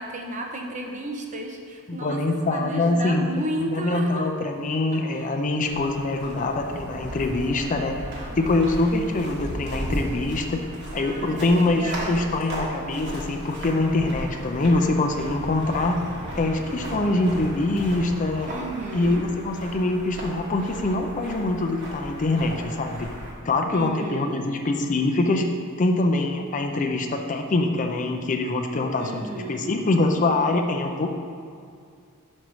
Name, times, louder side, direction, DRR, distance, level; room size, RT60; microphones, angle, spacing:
voice 1, 0.0-4.3 4.9-5.3 5.6-5.7 8.0-8.7 11.0-12.3 18.5-19.3 23.7-24.4 29.0-29.7, right 2 dB, 35° right, 2 dB, 0.7 m, -34 dB
voice 2, 1.9-8.0 8.4-10.6 10.9-16.0 16.3-18.5 18.9-23.1 23.4-25.4 25.8-31.2, left 2 dB, 35° left, 3 dB, 0.5 m, -24 dB
sound 1, 5.7-23.3, equal, 50° right, 1.5 m, -36 dB
5.4 x 4.6 x 6.2 m, 2.3 s
head